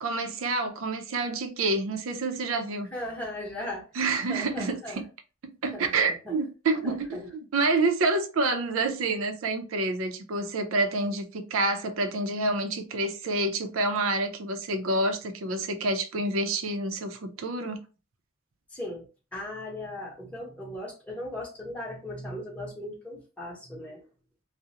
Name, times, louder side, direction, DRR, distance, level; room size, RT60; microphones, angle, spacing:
voice 1, 0.0-2.9 3.9-5.0 5.4-17.8, right 2 dB, 90° right, 0.5 m, -28 dB
voice 2, 2.9-3.9 4.3-5.0 5.7-6.3 6.8-7.3 18.7-19.1 19.3-24.0, left 1 dB, 5° left, 0.9 m, -38 dB
2.4 x 2.0 x 2.8 m
head